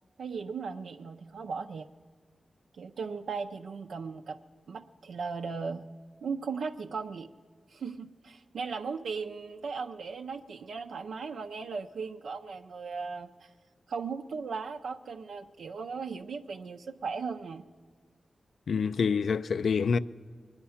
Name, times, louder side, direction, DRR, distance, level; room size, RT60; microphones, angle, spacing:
voice 1, 0.2-1.9 2.7-4.4 4.7-5.9 6.2-7.3 7.7-13.5 13.9-17.6, right 5 dB, 90° right, 0.5 m, -37 dB
voice 2, 18.7-20.0, left 5 dB, 80° left, 0.4 m, -26 dB
22.0 x 9.6 x 5.7 m
cardioid pair, 70°, 0 cm